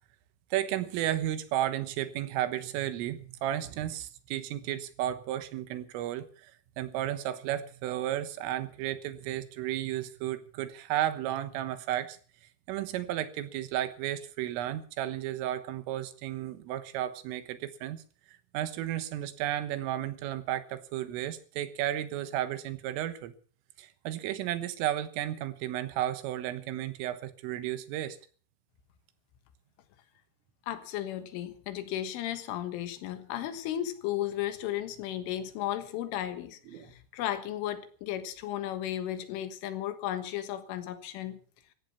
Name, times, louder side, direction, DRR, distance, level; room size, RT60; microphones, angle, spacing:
voice 1, 0.5-6.5 6.8-12.2 12.7-18.0 18.5-23.3 23.8-28.2 36.7-36.9, right 12 dB, 80° right, 12 dB, 3.8 m, -33 dB
voice 2, 30.7-41.4, left 12 dB, 75° left, 10 dB, 3.8 m, -35 dB
16.5 x 14.5 x 5.8 m, 0.41 s
omnidirectional pair, 5.9 m